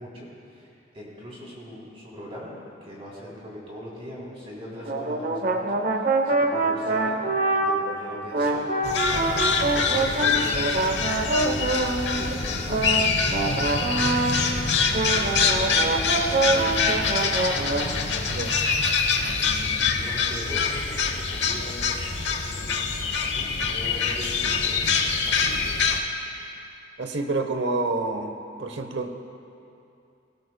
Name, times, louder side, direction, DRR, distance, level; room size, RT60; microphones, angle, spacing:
voice 1, 0.0-2.5 2.8-10.8 11.4-14.2 14.6-18.3 19.2-21.8 22.2-22.9 23.2-24.8 25.2-25.6, equal, 35° right, -6 dB, 3.4 m, -41 dB
sound 1, 4.8-8.0 8.3-14.7 14.9-17.9, right 2 dB, 50° right, 0.9 m, -25 dB
sound 2, 8.8-26.0, left 5 dB, 75° left, 1.0 m, -25 dB
voice 2, 27.0-29.1, right 3 dB, 75° right, 6 dB, 0.9 m, -28 dB
19.5 x 18.0 x 2.3 m, 2.7 s
head